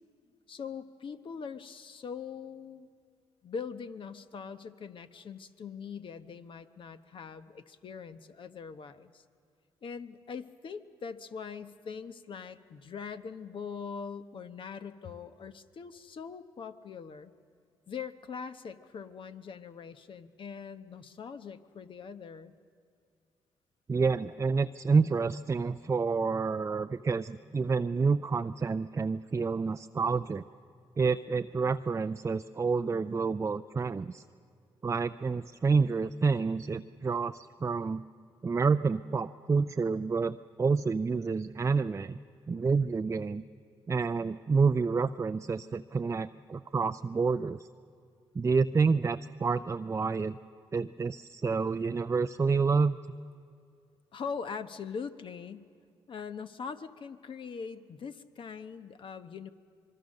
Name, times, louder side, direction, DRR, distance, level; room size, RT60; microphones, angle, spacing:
voice 1, 0.5-2.9 3.4-9.2 9.8-17.3 17.9-22.5 54.1-55.7 56.1-59.5, left 6 dB, 55° left, 10 dB, 1.1 m, -42 dB
voice 2, 23.9-30.4 31.0-34.2 34.8-38.0 38.4-42.2 42.5-43.4 43.9-47.7 48.3-50.4 50.7-53.0, right 4 dB, 30° right, 9 dB, 0.5 m, -28 dB
25.5 x 22.0 x 6.5 m, 2.3 s
cardioid pair, 70°, 10 cm